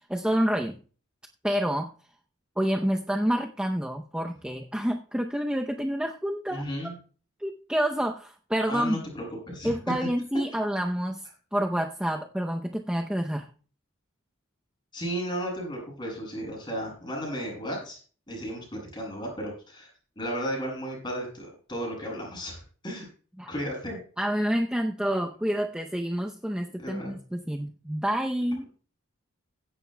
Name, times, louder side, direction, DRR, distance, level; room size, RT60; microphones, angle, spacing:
voice 1, 0.1-0.7 1.4-1.9 2.6-6.9 7.4-9.0 9.6-13.5 23.4-23.5 24.2-28.7, equal, 5° right, 2 dB, 0.6 m, -28 dB
voice 2, 6.5-6.9 8.7-9.7 10.0-10.1 14.9-18.0 18.3-23.1 23.5-24.0 26.8-27.1, equal, 20° left, -1 dB, 7.2 m, -34 dB
16.5 x 11.5 x 2.2 m, 0.39 s
head